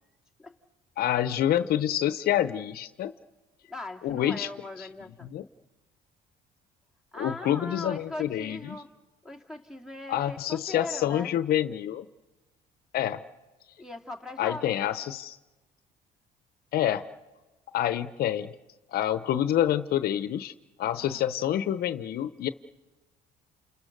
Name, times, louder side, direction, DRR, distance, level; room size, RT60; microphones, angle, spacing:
voice 1, 1.0-3.1 4.0-4.5 4.8-4.9 5.2-5.4 7.2-8.6 10.1-12.1 12.9-13.2 14.4-15.4 16.7-17.1 17.7-18.5 18.9-20.5 20.8-22.5, left 11 dB, 65° left, 12 dB, 0.8 m, -27 dB
voice 2, 3.7-5.3 7.1-8.9 9.2-11.3 13.8-14.8 21.0-21.3, left 2 dB, 5° right, 5 dB, 2.5 m, -40 dB
29.0 x 28.5 x 6.7 m, 1.1 s
cardioid pair, 110°, 17 cm